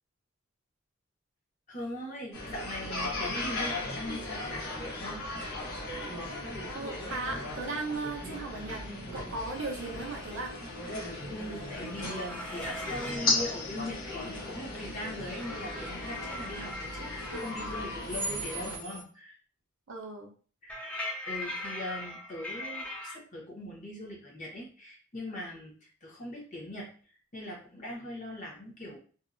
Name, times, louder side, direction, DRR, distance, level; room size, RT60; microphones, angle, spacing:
voice 1, 1.7-5.2 10.8-19.3 20.6-21.0 21.3-29.0, left 1 dB, 35° left, -3 dB, 0.8 m, -41 dB
sound 1, 2.3-18.8, left 1 dB, 85° left, 0.9 m, -39 dB
voice 2, 6.7-8.8 9.1-10.5 19.9-20.3, right 3 dB, 65° right, 3 dB, 0.5 m, -36 dB
sound 2, 9.5-19.0, left 2 dB, 65° left, 1.1 m, -38 dB
sound 3, 11.7-13.3 15.3-18.1 20.7-23.1, left 2 dB, 5° left, 0.3 m, -40 dB
2.7 x 2.1 x 2.4 m, 0.40 s
head